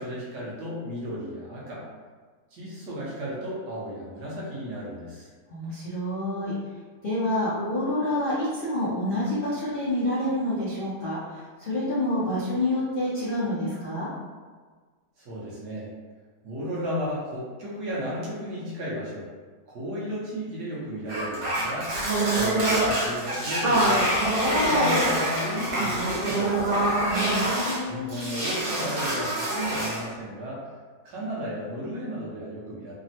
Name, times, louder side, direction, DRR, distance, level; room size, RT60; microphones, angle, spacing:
voice 1, 0.0-1.8 2.5-5.3 15.2-15.9 16.4-19.3 19.7-21.9 22.3-24.1 24.4-26.8 27.9-30.7 31.0-32.9, equal, 70° right, -6 dB, 1.4 m, -34 dB
voice 2, 5.5-6.5 7.0-14.1 27.1-28.2, left 1 dB, 60° left, -10 dB, 0.5 m, -28 dB
sound 1, 21.1-27.8 28.1-30.1, right 1 dB, 90° right, 1.5 m, -25 dB
3.5 x 2.1 x 2.7 m, 1.5 s
omnidirectional pair, 1.8 m